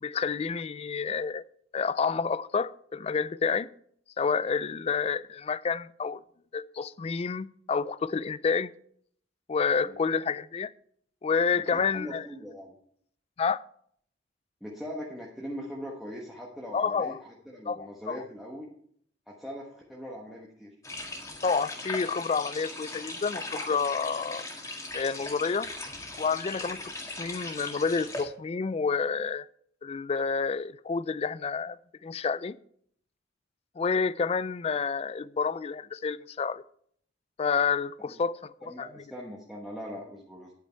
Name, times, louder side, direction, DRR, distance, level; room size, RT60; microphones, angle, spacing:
voice 1, 0.0-1.4 1.7-3.7 4.2-6.2 6.5-8.7 9.5-10.7 11.2-12.2 13.4-13.6 16.7-17.2 17.7-18.2 21.4-24.4 24.9-25.7 26.2-29.5 29.8-31.8 32.0-32.6 33.8-36.6 37.4-38.9, left 5 dB, 30° left, 19 dB, 0.3 m, -29 dB
voice 2, 11.7-12.8 14.6-18.7 19.3-20.7 38.1-38.3 38.6-40.5, equal, ahead, -3 dB, 1.1 m, -41 dB
sound 1, 20.8-28.2, left 2 dB, 15° left, 1.8 m, -39 dB
10.0 x 8.8 x 4.4 m, 0.64 s
head